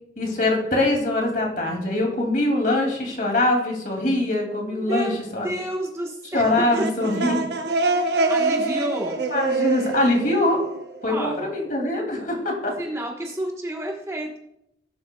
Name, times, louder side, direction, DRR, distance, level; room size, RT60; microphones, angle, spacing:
voice 1, 0.2-5.5 6.3-7.4 9.3-10.6 11.0-12.7, left 2 dB, 50° left, 1 dB, 2.6 m, -23 dB
voice 2, 4.7-5.2 5.4-6.5 6.8-6.9 7.8-9.2 11.1-11.5 12.8-14.4, right 1 dB, 15° right, -1 dB, 1.2 m, -30 dB
sound 1, 6.5-11.2, right 3 dB, 65° right, 0.9 m, -25 dB
17.5 x 7.8 x 2.3 m, 0.80 s
head